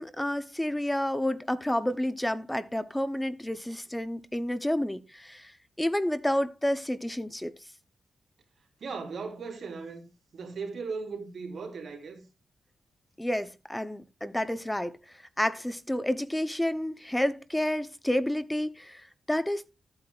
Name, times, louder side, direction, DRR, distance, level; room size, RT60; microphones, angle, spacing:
voice 1, 0.0-5.5 5.8-7.5 13.2-19.7, left 1 dB, 5° left, 0.7 m, -30 dB
voice 2, 8.8-10.0 10.3-12.2, right 4 dB, 60° right, 3.5 m, -37 dB
14.0 x 8.7 x 2.4 m
wide cardioid pair, 115°, 0 cm